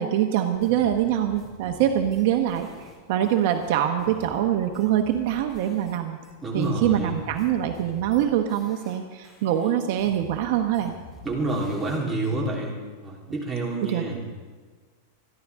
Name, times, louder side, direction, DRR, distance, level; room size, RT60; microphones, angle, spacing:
voice 1, 0.0-6.2 6.5-10.9 13.9-14.0, right 11 dB, 55° right, 5 dB, 1.1 m, -24 dB
sound 1, 0.5-6.0 6.2-9.0 9.2-12.3, left 2 dB, 15° left, 2.8 m, -47 dB
voice 2, 6.4-7.2 11.2-14.2, right 2 dB, 10° right, -4 dB, 3.6 m, -28 dB
27.0 x 11.0 x 3.6 m, 1.4 s
supercardioid pair, 150°, 0 cm